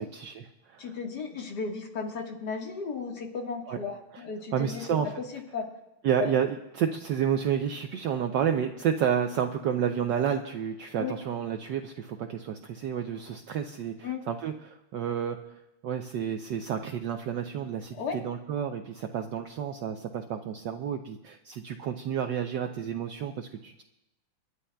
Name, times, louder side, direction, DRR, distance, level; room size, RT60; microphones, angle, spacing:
voice 1, 0.0-0.9 3.7-3.8 4.5-5.1 6.0-15.4 15.8-23.8, right 8 dB, 70° right, 5 dB, 1.1 m, -30 dB
voice 2, 0.8-5.7 6.2-6.4 11.0-11.2 14.0-14.3 18.0-18.2, left 5 dB, 50° left, 2 dB, 1.9 m, -35 dB
29.5 x 11.5 x 2.3 m, 0.94 s
omnidirectional pair, 2.4 m